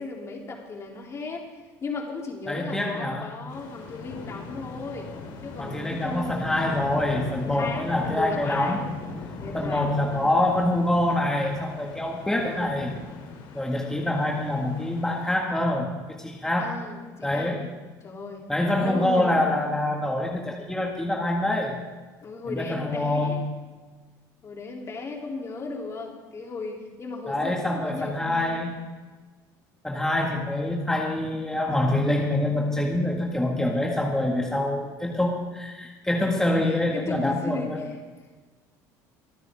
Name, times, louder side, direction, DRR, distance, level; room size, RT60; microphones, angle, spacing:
voice 1, 0.0-1.4 1.8-5.1 5.4-6.8 7.4-8.8 9.4-10.3 12.3-12.8 16.6-17.5 18.0-18.5 18.8-19.6 22.2-23.5 24.4-28.6 36.3-38.0, left 3 dB, 35° left, 0 dB, 3.1 m, -36 dB
voice 2, 2.5-3.3 5.6-8.9 9.5-12.9 13.5-16.8 17.2-17.7 18.5-21.8 22.5-23.5 27.3-28.7 29.8-37.8, left 1 dB, 5° left, -1 dB, 1.8 m, -25 dB
sound 1, 3.5-15.3, left 4 dB, 65° left, 3.0 m, -40 dB
25.0 x 9.5 x 3.6 m, 1.3 s
supercardioid pair, 105°, 8 cm